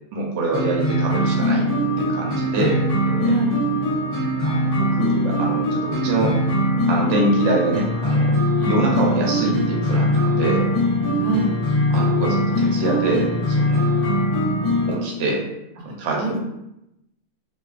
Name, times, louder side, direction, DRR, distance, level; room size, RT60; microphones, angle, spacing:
voice 1, 0.1-1.7 2.0-3.3 4.4-6.4 6.9-10.7 11.9-14.0 14.9-15.4 15.8-16.2, right 2 dB, 65° right, -2 dB, 0.8 m, -25 dB
sound 1, 0.5-14.9, equal, 50° left, 0.8 m, -21 dB
voice 2, 3.2-3.6 8.6-8.7 11.2-11.6 15.8-16.4, right 2 dB, 85° right, -1 dB, 1.1 m, -26 dB
2.3 x 2.3 x 2.4 m, 0.86 s
omnidirectional pair, 1.6 m